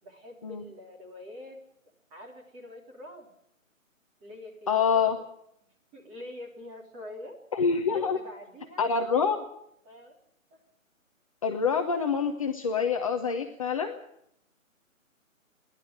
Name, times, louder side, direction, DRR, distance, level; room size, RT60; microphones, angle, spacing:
voice 1, 0.0-1.6 2.1-3.3 4.2-5.2 5.9-7.4 7.9-9.2 9.8-10.1 10.5-10.6, left 1 dB, 15° right, 0 dB, 3.3 m, -45 dB
voice 2, 4.7-5.2 7.5-8.2 8.8-9.4 11.4-14.0, left 6 dB, 25° left, 4 dB, 0.9 m, -26 dB
30.0 x 11.5 x 7.9 m, 0.75 s
hypercardioid pair, 160°, 41 cm